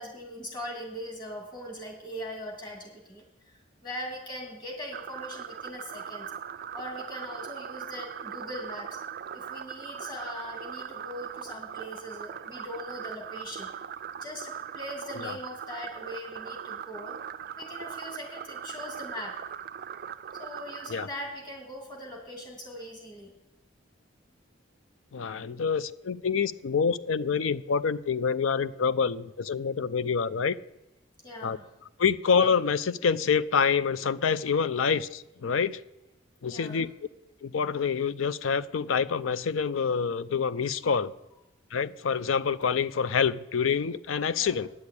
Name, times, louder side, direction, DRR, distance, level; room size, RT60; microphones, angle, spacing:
voice 1, 0.0-3.5 3.8-6.3 6.7-9.0 9.3-13.7 14.2-17.2 17.6-19.4 20.3-23.3 31.2-31.6 36.5-36.9 44.4-44.6, equal, 20° left, 0 dB, 2.6 m, -40 dB
sound 1, 4.9-21.1, right 8 dB, 50° right, 0.3 m, -40 dB
voice 2, 25.1-30.5 31.4-31.6 32.0-35.8 36.4-36.9 37.4-41.1 41.7-44.7, left 6 dB, 85° left, 15 dB, 0.5 m, -27 dB
9.5 x 8.1 x 8.5 m, 0.92 s
head